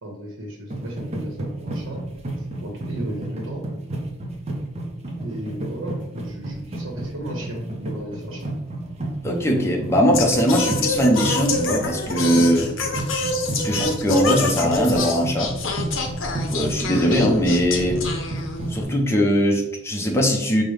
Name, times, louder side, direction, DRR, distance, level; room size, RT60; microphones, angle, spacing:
voice 1, 0.0-2.0 2.4-3.6 5.2-8.5, equal, 85° right, -1 dB, 0.8 m, -35 dB
sound 1, 0.7-19.1, right 1 dB, 35° right, 0.6 m, -31 dB
voice 2, 9.2-12.7 13.6-15.6 16.5-18.0 18.7-20.6, equal, 15° left, 0 dB, 0.5 m, -20 dB
Singing, 10.1-18.8, left 3 dB, 70° left, 0.6 m, -27 dB
5.2 x 2.1 x 3.1 m, 0.90 s
head